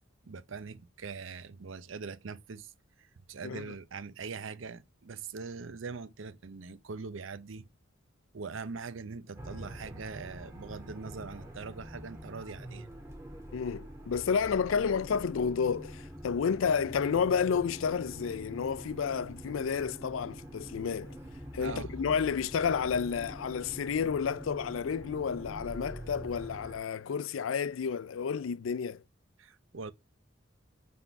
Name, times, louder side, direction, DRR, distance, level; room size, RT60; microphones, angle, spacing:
voice 1, 0.2-2.7 3.0-7.7 8.3-12.9 21.6-22.0 29.4-29.9, right 4 dB, 70° right, 0.6 m, -42 dB
sound 1, 9.4-26.8, equal, 15° right, 1.7 m, -45 dB
voice 2, 13.5-21.2 21.5-29.0, left 6 dB, 75° left, 0.4 m, -31 dB
5.9 x 3.8 x 5.7 m
head